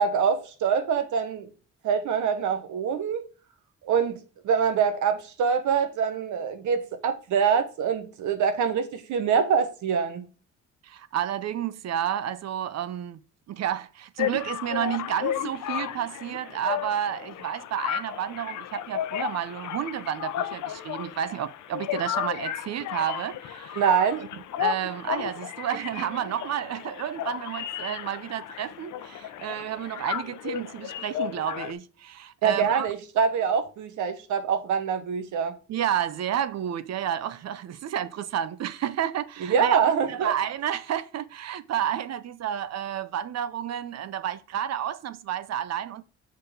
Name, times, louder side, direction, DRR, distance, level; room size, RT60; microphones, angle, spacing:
voice 1, 0.0-1.5 1.8-3.2 3.8-10.3 23.8-24.3 32.4-35.5 39.4-40.3, right 7 dB, 75° right, 1.2 m, -25 dB
voice 2, 10.8-13.2 13.5-23.8 24.2-24.3 24.6-32.9 35.7-39.8 40.1-46.0, right 10 dB, 60° right, 0.7 m, -31 dB
sound 1, 14.2-31.7, left 11 dB, 75° left, 0.7 m, -33 dB
6.7 x 4.1 x 4.9 m
cardioid pair, 90°, 30 cm